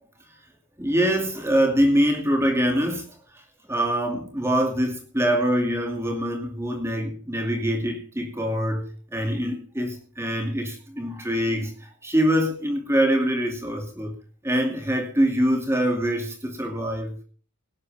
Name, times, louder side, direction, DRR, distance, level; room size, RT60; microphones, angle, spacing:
voice 1, 0.8-3.0 3.7-14.1 14.4-17.1, equal, 10° right, 3 dB, 2.5 m, -24 dB
18.0 x 11.5 x 3.6 m, 0.39 s
head